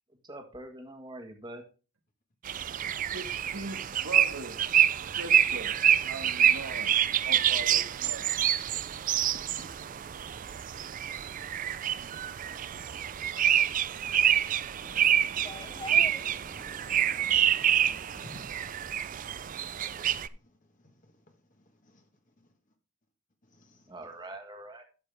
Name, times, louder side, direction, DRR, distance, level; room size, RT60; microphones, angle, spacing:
voice 1, 0.2-1.6 23.9-24.8, right 1 dB, 20° right, 1.6 m, -44 dB
sound 1, 2.4-20.3, right 10 dB, 40° right, 0.4 m, -27 dB
voice 2, 3.1-4.6 5.2-5.7 6.0-8.4, right 2 dB, 85° right, 1.6 m, -40 dB
voice 3, 9.1-9.9 10.3-10.8 12.4-12.5 13.1-13.3 14.3-14.7 18.2-19.8 20.3-20.5 20.8-22.0 23.4-24.1, left 1 dB, 40° left, 1.4 m, -55 dB
voice 4, 14.8-18.3, left 2 dB, 20° left, 0.5 m, -47 dB
12.0 x 7.0 x 3.4 m
head